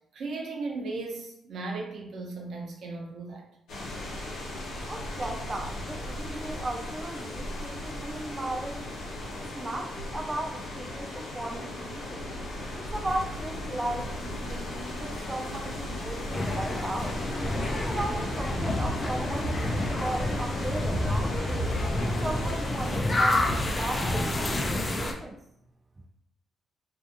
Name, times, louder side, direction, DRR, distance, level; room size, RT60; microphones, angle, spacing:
voice 1, 0.1-3.4, right 3 dB, 70° right, 0 dB, 0.6 m, -36 dB
sound 1, 3.7-23.0, left 1 dB, 85° left, 0.8 m, -37 dB
voice 2, 4.9-8.8 9.3-12.4 12.7-17.1 17.7-21.7 22.2-25.4, right 1 dB, 25° right, 2 dB, 0.4 m, -36 dB
sound 2, 16.3-25.1, left 1 dB, 35° left, 0.5 m, -28 dB
2.7 x 2.4 x 2.5 m, 0.75 s
supercardioid pair, 60°, 0 cm